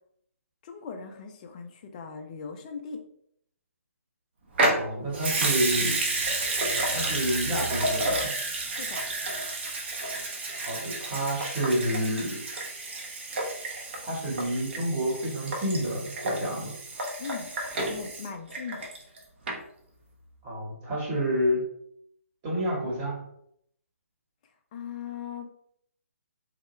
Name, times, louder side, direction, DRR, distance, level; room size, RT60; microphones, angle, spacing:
voice 1, 0.6-3.0 8.7-9.0 17.2-17.5 17.9-18.9 24.7-25.5, left 6 dB, 30° left, 5 dB, 0.4 m, -39 dB
Water tap faucet / Sink (filling or washing) / Liquid, 4.5-19.2 19.5-19.6, right 2 dB, 45° right, 0.7 m, -30 dB
voice 2, 4.7-6.0 6.9-8.3 10.6-12.4 14.0-16.7 20.4-21.6 22.4-23.2, equal, 25° right, -4 dB, 1.1 m, -29 dB
2.8 x 2.1 x 3.0 m, 0.70 s
figure-of-eight pair, 140°, 8 cm